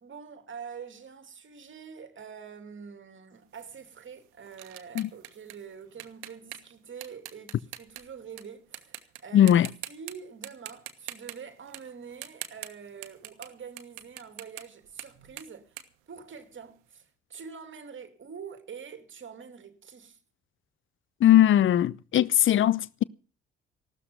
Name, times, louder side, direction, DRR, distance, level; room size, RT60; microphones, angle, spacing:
voice 1, 0.0-15.8 16.1-20.2, right 6 dB, 35° right, 2.5 m, -45 dB
sound 1, 3.5-8.4 8.7-9.2 9.5-10.1 10.4-13.5 13.8-16.8, right 15 dB, 65° right, 1.3 m, -43 dB
voice 2, 9.3-9.7 21.2-23.0, left 11 dB, 35° left, 0.7 m, -20 dB
15.5 x 12.5 x 5.4 m
figure-of-eight pair, 45°, 33 cm